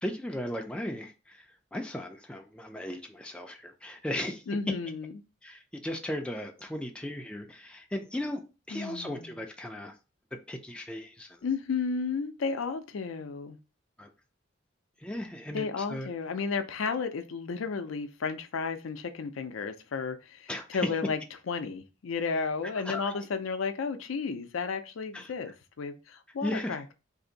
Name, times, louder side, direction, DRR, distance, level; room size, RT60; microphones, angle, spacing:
voice 1, 0.0-1.5 1.7-4.4 5.4-8.4 8.7-9.9 10.5-11.4 14.0-14.1 15.0-16.1 20.5-20.7 20.9-21.0 22.8-23.2 25.1-25.3 26.4-26.8, left 1 dB, 5° left, 0.3 m, -36 dB
voice 2, 4.5-5.2 8.7-9.4 11.4-13.6 15.5-21.2 21.5-26.9, left 5 dB, 80° left, 0.4 m, -33 dB
2.7 x 2.5 x 3.8 m
head